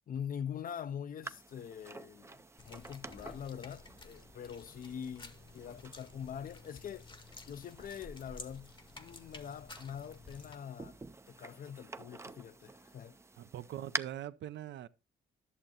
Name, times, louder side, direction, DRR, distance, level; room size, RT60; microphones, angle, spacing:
voice 1, 0.1-7.1 7.5-11.0 11.3-13.2, left 8 dB, 45° left, 0.4 m, -44 dB
sound 1, 1.2-14.0, right 3 dB, 15° right, 0.4 m, -48 dB
sound 2, 2.6-10.6, left 3 dB, 25° left, 0.8 m, -53 dB
sound 3, 3.0-7.7, right 5 dB, 50° right, 1.2 m, -68 dB
voice 2, 13.4-14.9, right 12 dB, 65° right, 0.5 m, -42 dB
11.0 x 6.6 x 2.8 m
cardioid pair, 90°, 20 cm